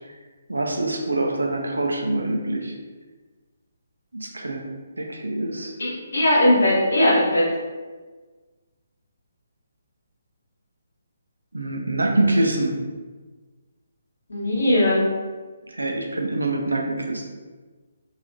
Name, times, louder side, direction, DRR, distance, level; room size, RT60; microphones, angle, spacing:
voice 1, 0.5-2.7 4.1-4.6 5.0-5.7 11.5-12.8 15.7-17.2, right 2 dB, 70° right, 1 dB, 0.5 m, -25 dB
voice 2, 5.8-7.4 14.3-15.0, left 1 dB, 60° left, -6 dB, 1.2 m, -19 dB
3.4 x 2.7 x 2.6 m, 1.4 s
figure-of-eight pair, 140°, 0 cm